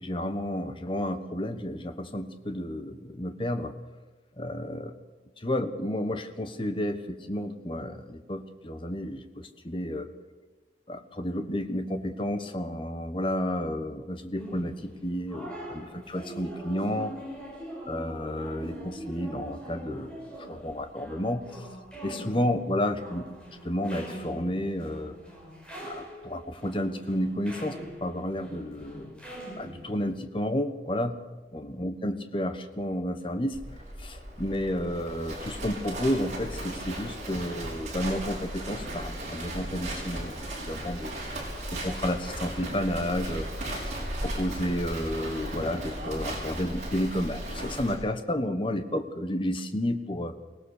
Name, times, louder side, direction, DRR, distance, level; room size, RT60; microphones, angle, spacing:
voice 1, 0.0-3.7 4.4-4.9 5.4-10.1 10.9-17.1 17.9-21.6 22.0-23.3 23.6-25.1 25.8-29.2 29.6-31.2 31.5-41.1 41.7-50.3, left 1 dB, 30° left, 9 dB, 1.3 m, -31 dB
sound 1, 14.4-30.0, right 1 dB, 5° left, 5.5 m, -43 dB
Livestock farm animals working animals, 33.5-48.0, right 1 dB, 40° right, 5.9 m, -36 dB
23.5 x 18.0 x 6.6 m, 1.2 s
head